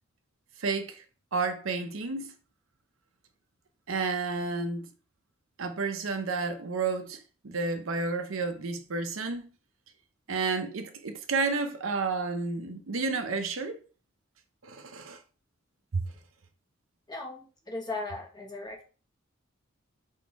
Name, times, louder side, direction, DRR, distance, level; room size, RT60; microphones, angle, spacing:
voice 1, 0.6-1.0 1.3-2.3 3.9-4.8 5.6-9.5 10.3-13.8 14.6-15.2 15.9-16.0, right 4 dB, 85° right, 0.7 m, -31 dB
voice 2, 17.1-18.9, left 3 dB, 20° left, 0.9 m, -37 dB
3.7 x 3.5 x 4.0 m
head